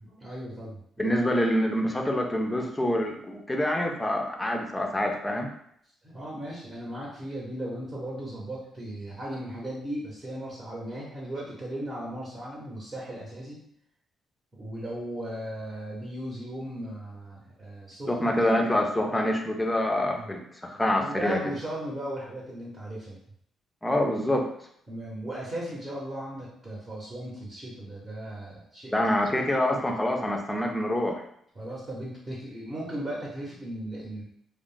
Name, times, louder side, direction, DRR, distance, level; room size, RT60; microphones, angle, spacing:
voice 1, 0.0-1.3 6.0-13.6 14.6-18.4 20.1-20.3 21.0-23.2 24.9-29.0 31.5-34.2, right 1 dB, 30° right, -5 dB, 0.8 m, -37 dB
voice 2, 1.0-5.5 18.1-21.4 23.8-24.5 28.9-31.2, left 1 dB, 15° left, 3 dB, 0.5 m, -26 dB
2.3 x 2.0 x 3.7 m, 0.69 s
cardioid pair, 90°, 0 cm